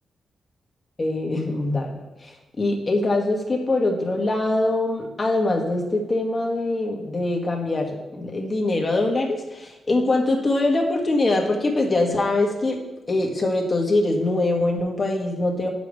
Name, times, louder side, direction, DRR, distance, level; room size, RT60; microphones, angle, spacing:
voice 1, 1.0-1.9 2.2-12.8 13.1-15.7, left 2 dB, 40° left, 1 dB, 2.0 m, -23 dB
9.0 x 7.1 x 3.3 m, 1.0 s
supercardioid pair, 45°, 0 cm